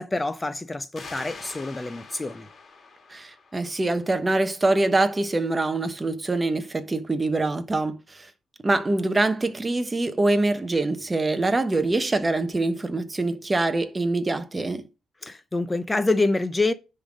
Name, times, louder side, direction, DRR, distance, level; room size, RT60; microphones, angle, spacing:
voice 1, 0.0-2.5 15.2-16.7, left 2 dB, 15° left, 0.7 m, -26 dB
sound 1, 1.0-4.3, left 4 dB, 40° left, 2.0 m, -44 dB
voice 2, 3.1-8.3 8.6-14.9, right 2 dB, 20° right, 1.1 m, -24 dB
10.0 x 3.8 x 6.2 m
cardioid pair, 95°, 0 cm